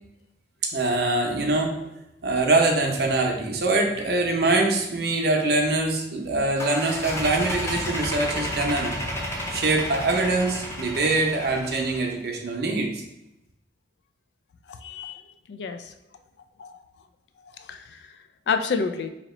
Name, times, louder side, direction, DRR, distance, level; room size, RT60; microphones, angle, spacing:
voice 1, 0.6-1.9 2.2-9.0 9.5-13.0, right 2 dB, 60° right, 2 dB, 0.6 m, -23 dB
sound 1, 6.6-12.1, equal, 15° left, 0.6 m, -32 dB
voice 2, 14.8-15.2 15.5-15.9 16.6-16.7 17.6-18.0 18.5-19.1, left 5 dB, 65° left, 8 dB, 0.3 m, -28 dB
2.9 x 2.9 x 4.2 m, 0.90 s
head